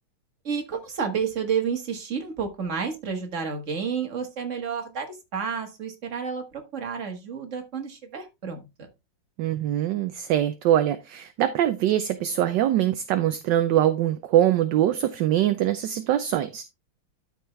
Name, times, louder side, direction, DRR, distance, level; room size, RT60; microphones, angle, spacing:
voice 1, 0.4-6.4 6.7-8.9, right 6 dB, 40° right, 1.8 m, -30 dB
voice 2, 9.4-16.6, right 12 dB, 70° right, 1.2 m, -23 dB
12.5 x 4.7 x 3.2 m
omnidirectional pair, 2.2 m